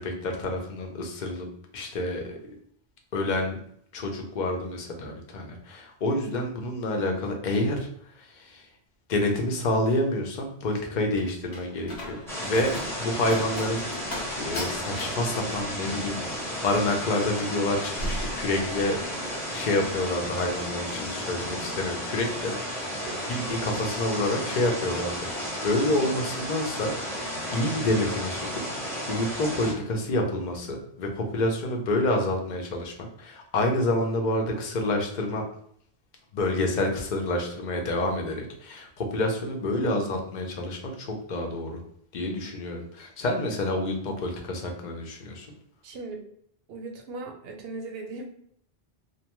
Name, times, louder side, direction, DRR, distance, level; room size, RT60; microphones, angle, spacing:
voice 1, 0.0-1.5 1.7-2.4 3.1-3.6 3.9-7.9 8.2-8.7 9.1-13.9 14.4-19.0 19.5-28.4 29.1-35.4 36.3-41.8 42.1-45.5, left 1 dB, 55° left, 2 dB, 0.6 m, -28 dB
Slam, 10.6-19.1 19.4-19.9, equal, 80° left, 0.9 m, -38 dB
sound 1, 12.3-29.7, equal, 5° left, 0.7 m, -33 dB
voice 2, 39.7-40.0 45.8-46.2 46.7-48.3, right 3 dB, 75° right, 3 dB, 0.8 m, -38 dB
2.6 x 2.2 x 2.9 m, 0.67 s
omnidirectional pair, 1.1 m